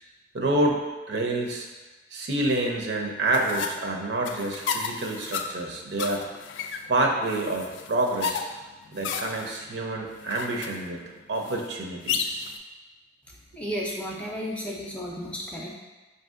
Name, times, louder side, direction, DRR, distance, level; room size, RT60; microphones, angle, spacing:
voice 1, 0.3-0.8 1.1-1.7 2.1-6.2 6.9-8.5 8.9-11.0 11.3-12.4, right 2 dB, 70° right, 0 dB, 0.6 m, -27 dB
sound 1, 3.3-12.6, left 6 dB, 90° left, 0.3 m, -34 dB
voice 2, 13.6-15.7, equal, 5° left, -2 dB, 0.4 m, -33 dB
5.5 x 2.6 x 2.4 m, 1.2 s
head